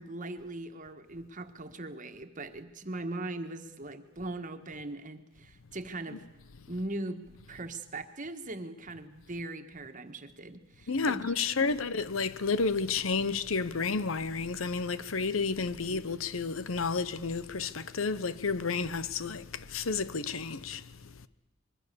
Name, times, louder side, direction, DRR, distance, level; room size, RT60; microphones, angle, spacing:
voice 1, 0.0-6.2 6.7-11.7 15.9-16.2, right 2 dB, 40° right, 1.6 m, -40 dB
voice 2, 10.9-21.3, left 4 dB, 90° left, 0.9 m, -31 dB
25.5 x 22.0 x 6.9 m
head